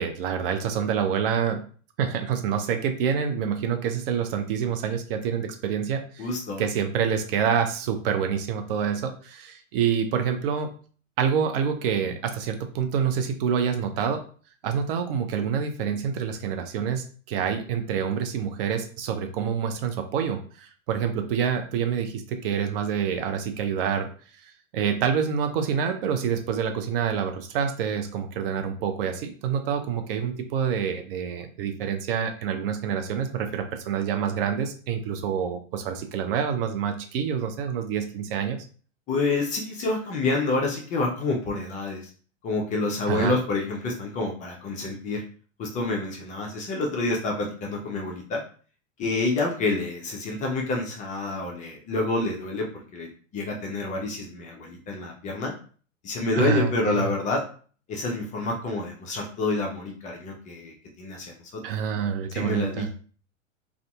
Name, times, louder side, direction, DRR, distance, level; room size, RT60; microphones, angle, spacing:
voice 1, 0.0-1.6 2.0-6.3 6.6-10.7 11.2-14.2 14.6-24.1 24.4-38.6 43.1-43.4 56.4-57.1 61.6-62.9, right 7 dB, 45° right, 6 dB, 0.5 m, -27 dB
voice 2, 6.2-6.6 39.1-42.1 42.4-45.2 45.6-48.4 49.0-52.7 52.9-53.1 53.3-55.5 56.0-57.4 57.9-61.6 62.3-62.9, left 3 dB, 20° left, 0 dB, 0.4 m, -28 dB
2.6 x 2.4 x 2.2 m, 0.42 s
hypercardioid pair, 100°, 39 cm